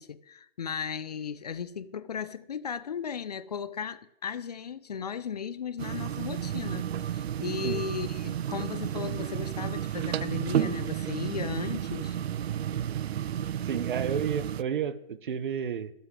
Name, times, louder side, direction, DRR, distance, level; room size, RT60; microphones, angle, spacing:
voice 1, 0.0-12.2, left 7 dB, 40° left, 0.5 m, -36 dB
sound 1, 5.8-14.6, right 10 dB, 80° right, 0.5 m, -32 dB
voice 2, 13.6-15.9, right 8 dB, 55° right, 0.9 m, -31 dB
12.0 x 8.2 x 7.6 m
hypercardioid pair, 165°, 31 cm